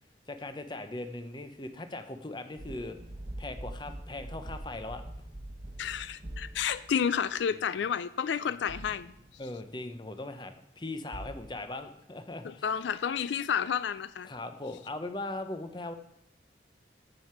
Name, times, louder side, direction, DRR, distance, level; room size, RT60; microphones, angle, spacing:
voice 1, 0.3-3.0 3.4-5.0 7.5-7.7 9.4-12.7 14.3-15.9, left 2 dB, 25° left, 8 dB, 0.7 m, -39 dB
sound 1, 2.6-7.2 8.7-9.6 11.1-11.5, right 1 dB, 45° right, 1.1 m, -43 dB
voice 2, 5.8-9.1 12.4-14.3, left 7 dB, 80° left, 15 dB, 0.3 m, -30 dB
7.7 x 7.6 x 5.7 m, 0.78 s
head